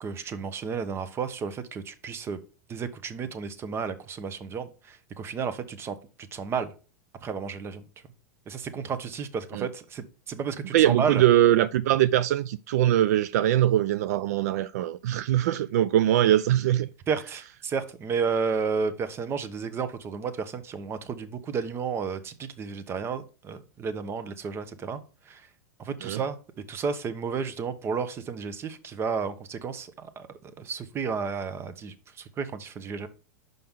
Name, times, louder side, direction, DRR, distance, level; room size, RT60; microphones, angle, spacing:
voice 1, 0.0-2.4 2.7-6.7 7.2-7.8 8.5-11.2 17.1-25.0 25.2-25.5 25.8-26.4 26.7-33.1, right 5 dB, 25° right, 0.9 m, -32 dB
voice 2, 10.7-16.9 26.0-26.2, right 12 dB, 70° right, 0.4 m, -22 dB
5.6 x 5.4 x 3.6 m
hypercardioid pair, 110°, 9 cm